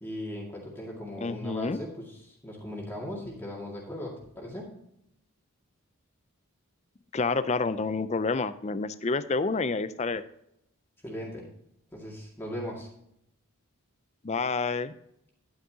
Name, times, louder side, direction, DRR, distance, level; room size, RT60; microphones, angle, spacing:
voice 1, 0.0-4.7 11.0-11.5 11.9-12.9, equal, 10° left, -3 dB, 2.1 m, -38 dB
voice 2, 1.2-1.8 7.1-10.2 14.2-14.9, left 4 dB, 30° left, 13 dB, 0.4 m, -28 dB
11.0 x 9.2 x 2.8 m, 0.77 s
head